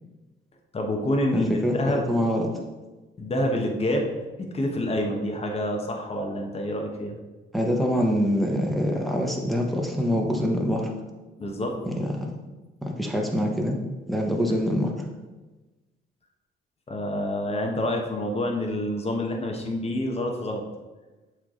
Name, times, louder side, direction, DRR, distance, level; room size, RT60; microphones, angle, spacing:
voice 1, 0.7-2.0 3.2-7.2 11.4-11.7 16.9-20.6, left 1 dB, 30° left, 1 dB, 1.1 m, -27 dB
voice 2, 1.3-2.6 7.5-10.9 11.9-12.1 12.8-13.8 14.1-14.9, equal, ahead, 0 dB, 1.1 m, -25 dB
7.4 x 3.3 x 3.8 m, 1.2 s
cardioid pair, 90°, 20 cm